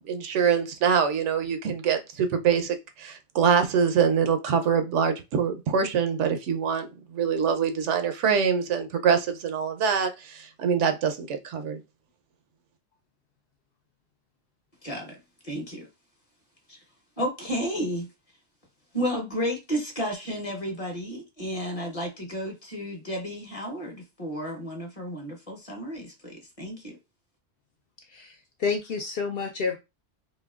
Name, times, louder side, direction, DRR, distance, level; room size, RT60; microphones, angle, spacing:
voice 1, 0.0-6.9 7.1-11.8, right 7 dB, 75° right, 0.9 m, -24 dB
voice 2, 14.8-15.2 15.4-15.9 16.7-16.8 17.2-18.1 18.9-27.0, equal, 30° left, 0.9 m, -32 dB
voice 3, 28.1-29.8, left 5 dB, 65° left, 0.6 m, -29 dB
4.2 x 2.9 x 2.3 m
omnidirectional pair, 1.3 m